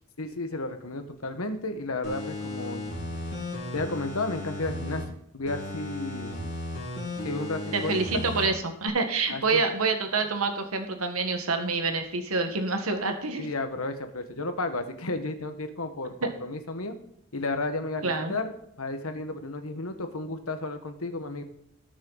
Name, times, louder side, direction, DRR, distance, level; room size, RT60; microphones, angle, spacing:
voice 1, 0.2-2.9 3.7-5.0 5.3-6.4 7.2-8.2 9.3-9.6 13.4-16.9 17.3-18.5 18.8-21.4, left 2 dB, 85° left, 7 dB, 1.5 m, -33 dB
sound 1, 2.0-5.0 5.5-8.5 8.9-9.0, left 2 dB, 55° left, 4.6 m, -35 dB
voice 2, 7.7-13.5 16.2-16.3 18.0-18.3, right 4 dB, 90° right, 6 dB, 1.5 m, -27 dB
18.5 x 6.5 x 4.0 m, 0.76 s
head